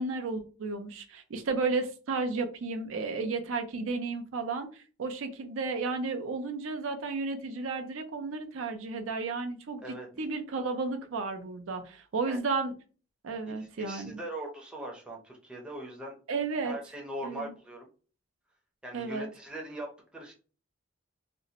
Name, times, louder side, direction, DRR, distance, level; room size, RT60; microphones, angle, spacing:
voice 1, 0.0-9.8 10.2-12.7 13.2-14.2 16.3-16.8 17.2-17.5 18.9-19.3, right 3 dB, 80° right, 6 dB, 0.5 m, -33 dB
voice 2, 13.5-16.2 16.6-17.9 18.8-20.3, right 1 dB, 5° right, -1 dB, 0.5 m, -41 dB
2.5 x 2.0 x 2.8 m, 0.37 s
head